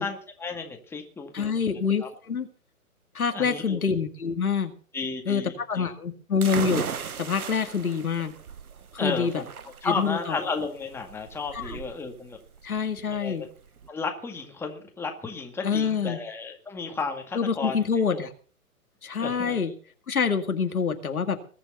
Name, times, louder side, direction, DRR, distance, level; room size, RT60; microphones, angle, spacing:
voice 1, 0.0-1.7 2.0-2.1 3.3-3.8 4.9-5.8 9.0-12.4 13.1-13.5 13.9-17.8 18.1-18.3 19.2-19.7, left 4 dB, 5° left, 3 dB, 1.9 m, -33 dB
voice 2, 1.3-2.5 3.1-4.7 5.3-8.3 9.0-9.4 9.8-10.4 11.5-11.8 12.6-13.4 15.6-16.2 17.4-18.3 19.0-19.7 20.1-21.4, left 6 dB, 75° left, 7 dB, 2.2 m, -26 dB
sound 1, 6.4-13.9, right 6 dB, 75° right, 1.2 m, -37 dB
21.0 x 7.1 x 6.9 m, 0.43 s
figure-of-eight pair, 130°, 44 cm